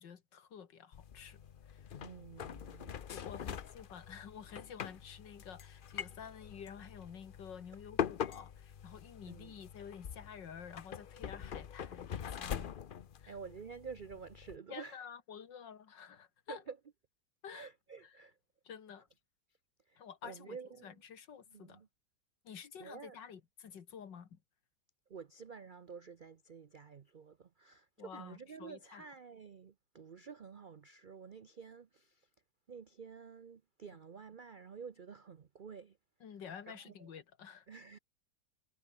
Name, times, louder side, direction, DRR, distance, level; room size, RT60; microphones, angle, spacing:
voice 1, 0.0-1.4 1.7-2.0 3.1-12.7 13.2-13.3 14.7-16.6 17.4-17.7 18.0-18.1 18.6-19.1 20.0-20.6 20.8-21.8 22.4-24.4 28.0-29.0 36.2-37.7, left 7 dB, 85° left, 2.4 m, -50 dB
sound 1, 0.9-14.6, left 8 dB, 65° left, 0.5 m, -44 dB
voice 2, 2.0-3.5 9.3-9.5 13.3-15.1 16.5-16.8 17.5-18.4 19.9-21.0 21.5-21.9 22.8-23.2 25.1-32.3 32.7-36.0 36.7-37.1 37.7-38.0, right 5 dB, 90° right, 0.4 m, -50 dB
omnidirectional pair, 1.9 m